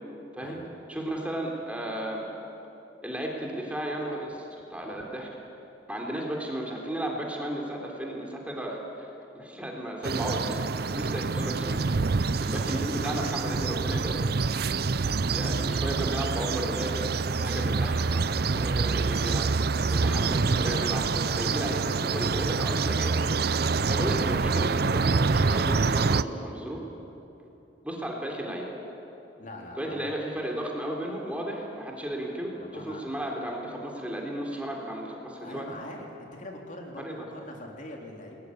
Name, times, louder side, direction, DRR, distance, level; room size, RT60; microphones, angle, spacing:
voice 1, 0.9-2.3 3.0-5.3 5.9-11.9 12.4-14.4 15.3-17.1 17.4-19.5 19.9-23.4 23.9-26.8 27.8-28.7 29.8-35.7 37.0-37.3, right 1 dB, 5° right, -1 dB, 3.5 m, -34 dB
sound 1, 10.0-26.2, right 4 dB, 55° right, 0.6 m, -26 dB
voice 2, 29.4-30.2 32.6-33.1 35.4-36.1 36.3-38.4, left 1 dB, 45° left, 0 dB, 3.7 m, -43 dB
28.5 x 21.0 x 9.8 m, 3.0 s
head